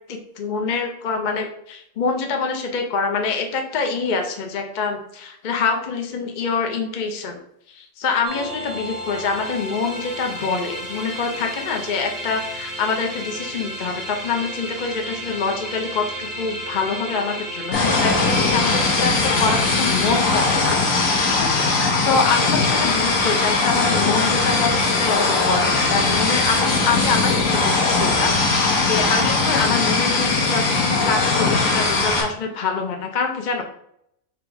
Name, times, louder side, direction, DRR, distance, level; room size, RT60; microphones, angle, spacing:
voice 1, 0.1-7.4 7.7-33.6, left 5 dB, 50° left, 3 dB, 0.6 m, -25 dB
sound 1, 8.2-21.3, equal, 20° right, 0.7 m, -33 dB
sound 2, 17.7-32.2, left 3 dB, 85° left, 1.4 m, -20 dB
3.8 x 2.9 x 4.5 m, 0.74 s
omnidirectional pair, 1.4 m